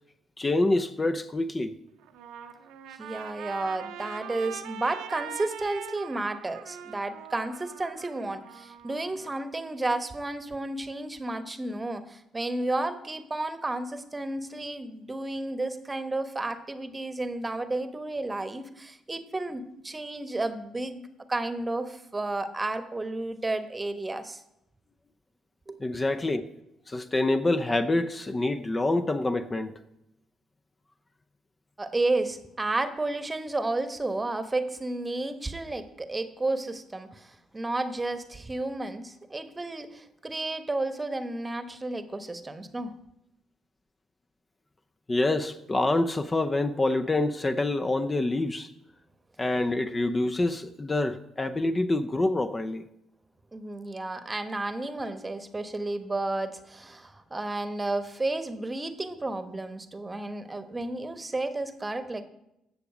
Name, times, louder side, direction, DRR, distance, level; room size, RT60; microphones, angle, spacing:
voice 1, 0.4-1.7 25.8-26.5 26.9-29.8 45.1-48.7 49.4-52.9, left 2 dB, 25° left, 0.7 m, -26 dB
Trumpet, 2.0-9.4, right 10 dB, 65° right, 0.8 m, -42 dB
voice 2, 3.0-21.0 21.3-24.4 25.7-25.8 31.8-42.9 53.5-62.2, right 2 dB, 20° right, 1.1 m, -32 dB
15.0 x 6.9 x 5.0 m
figure-of-eight pair, 45°, 0 cm